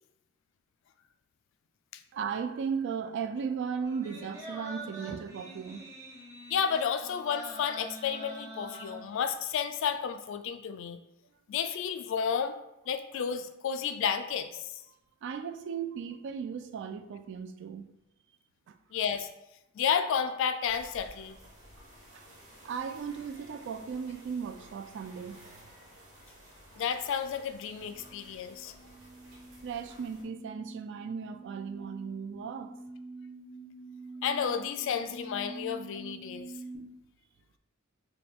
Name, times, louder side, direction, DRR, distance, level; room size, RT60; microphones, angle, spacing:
voice 1, 2.1-5.8 15.2-17.9 18.7-18.8 22.6-25.4 29.6-32.7, right 6 dB, 60° right, 9 dB, 0.3 m, -36 dB
sound 1, 3.8-9.5 9.9-10.0, right 2 dB, 15° right, 0.8 m, -45 dB
voice 2, 6.5-11.0 11.5-12.6 12.9-14.7 18.9-19.3 19.8-21.4 26.8-28.7 34.2-36.5, left 7 dB, 65° left, 10 dB, 0.3 m, -31 dB
sound 2, 20.6-30.2, equal, 85° right, 1.2 m, -54 dB
sound 3, 27.6-36.7, right 2 dB, 40° right, 1.2 m, -47 dB
4.2 x 2.3 x 3.5 m, 0.87 s
head